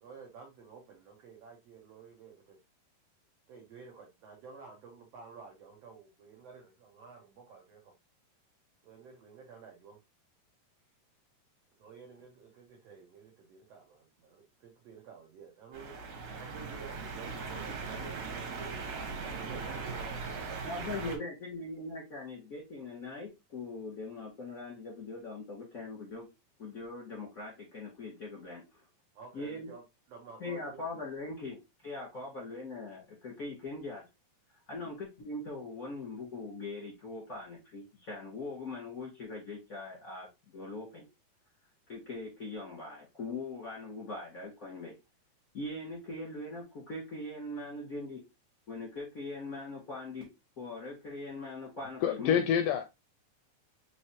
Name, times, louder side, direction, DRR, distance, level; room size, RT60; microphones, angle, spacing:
voice 1, 0.0-2.6 3.5-7.9 8.8-10.0 11.8-18.6 19.3-21.3 29.1-30.9 32.2-32.3, right 6 dB, 80° right, 1.4 m, -52 dB
sound 1, 15.7-21.2, right 4 dB, 60° right, 2.2 m, -39 dB
voice 2, 20.6-26.3 26.6-28.6 29.3-29.7 30.4-31.6 31.8-34.0 34.7-41.0 41.9-44.9 45.5-48.2 48.7-50.3 50.6-52.4, left 2 dB, 50° left, 1.0 m, -41 dB
voice 3, 52.0-52.8, left 8 dB, 80° left, 1.9 m, -27 dB
5.5 x 3.2 x 2.8 m
omnidirectional pair, 4.1 m